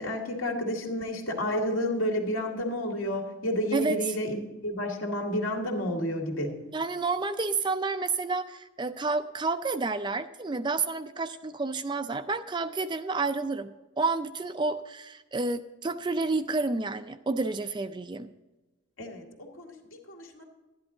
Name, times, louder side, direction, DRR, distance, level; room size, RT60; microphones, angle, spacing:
voice 1, 0.0-6.6 19.0-20.4, equal, 75° left, 1 dB, 2.1 m, -31 dB
voice 2, 6.7-18.3, right 3 dB, 20° right, 10 dB, 0.4 m, -30 dB
12.0 x 11.0 x 3.8 m, 1.1 s
head